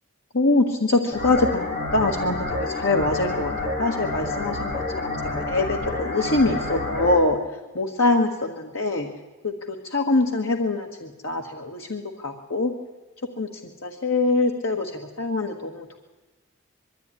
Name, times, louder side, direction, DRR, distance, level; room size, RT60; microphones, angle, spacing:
voice 1, 0.3-7.4 7.7-9.1 9.4-12.7 13.4-13.5 13.8-16.0, left 2 dB, 80° left, 2 dB, 1.7 m, -24 dB
sound 1, 1.1-7.2, left 2 dB, 30° left, 5.2 m, -29 dB
22.0 x 14.0 x 9.9 m, 1.2 s
head